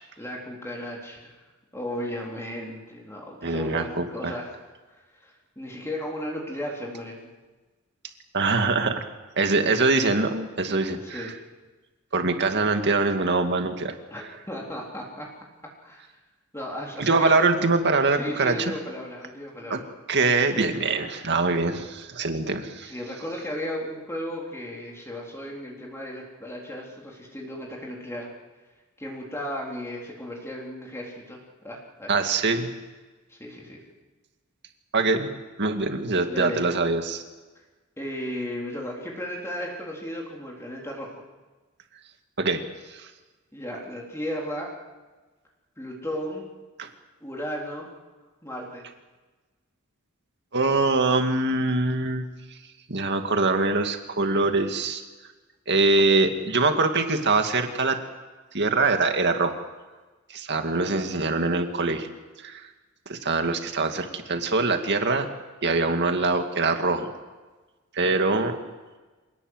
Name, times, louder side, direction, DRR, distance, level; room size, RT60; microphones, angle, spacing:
voice 1, 0.2-1.3 1.7-4.6 4.9-5.0 5.2-7.3 11.0-11.4 14.1-15.3 15.8-16.1 16.5-17.4 18.2-19.9 22.8-28.3 29.0-31.4 31.6-32.2 33.3-33.8 36.3-36.7 38.0-41.1 43.5-44.7 45.8-46.5 47.2-47.9 48.4-48.9, equal, 10° left, -2 dB, 3.8 m, -35 dB
voice 2, 3.4-4.3 8.3-9.0 9.4-11.3 12.1-13.9 17.0-18.7 19.7-19.8 20.1-22.9 32.1-32.7 34.9-35.3 35.6-37.2 42.4-42.6 42.9-43.1 46.8-46.9 50.5-52.3 52.9-55.0 55.7-58.0 58.5-59.6 60.3-62.1 62.4-62.6 63.1-65.3 65.6-67.1 67.9-68.5, right 3 dB, 55° right, 6 dB, 2.2 m, -23 dB
27.0 x 18.5 x 8.0 m, 1.3 s
head